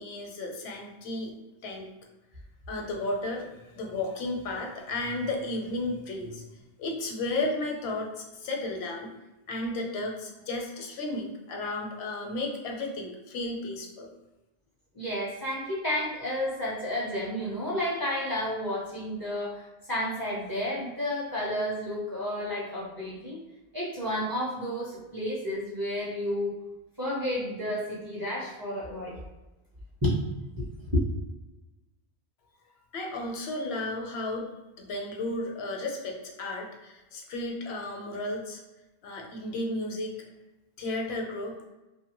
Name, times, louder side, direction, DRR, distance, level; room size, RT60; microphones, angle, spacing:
voice 1, 0.0-1.3 1.6-1.9 2.7-6.4 6.8-9.1 9.5-14.1 32.9-34.5 34.8-38.6 39.0-40.1 40.8-41.6, left 2 dB, 80° left, 1 dB, 0.8 m, -33 dB
voice 2, 14.9-23.4 23.7-26.5 27.0-29.3 30.0-30.2 30.6-31.0, left 1 dB, 25° right, -6 dB, 0.6 m, -31 dB
2.7 x 2.1 x 2.9 m, 1.0 s
omnidirectional pair, 1.1 m